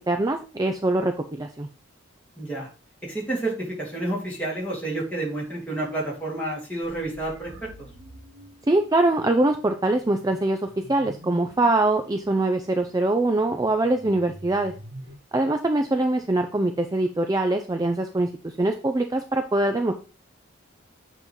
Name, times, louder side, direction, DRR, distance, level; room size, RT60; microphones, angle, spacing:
voice 1, 0.1-1.7 8.7-14.7 15.3-18.3 18.6-19.9, right 2 dB, 20° right, 5 dB, 0.4 m, -23 dB
voice 2, 2.4-2.7 3.0-7.7, right 2 dB, 5° left, -5 dB, 2.4 m, -30 dB
sound 1, 6.8-15.2, equal, 70° right, 1.2 m, -48 dB
7.8 x 3.1 x 5.2 m, 0.35 s
head